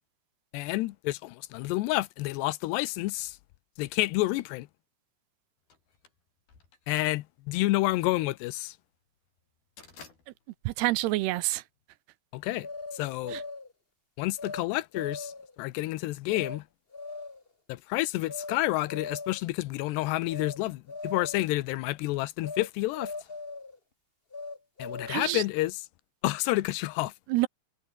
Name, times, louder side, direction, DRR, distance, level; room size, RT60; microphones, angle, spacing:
voice 1, 0.5-3.4 3.8-4.7 6.9-8.8 12.3-12.7 12.9-13.4 14.2-15.3 15.6-16.6 17.7-23.1 24.8-25.7 26.2-27.1, left 18 dB, 80° left, 2.9 m, -29 dB
sound 1, 5.7-11.8, left 5 dB, 60° left, 8.0 m, -55 dB
voice 2, 10.7-11.6 13.3-13.4 25.1-25.4 27.3-27.5, right 18 dB, 80° right, 2.7 m, -27 dB
sound 2, 12.6-13.7 14.4-14.6 14.9-15.5 16.3-16.6 16.9-17.5 18.3-18.6 18.9-19.5 20.3-20.6 20.9-21.5 22.4-22.7 22.9-23.8 24.3-25.3, left 3 dB, 35° left, 0.9 m, -40 dB
omnidirectional pair, 5.0 m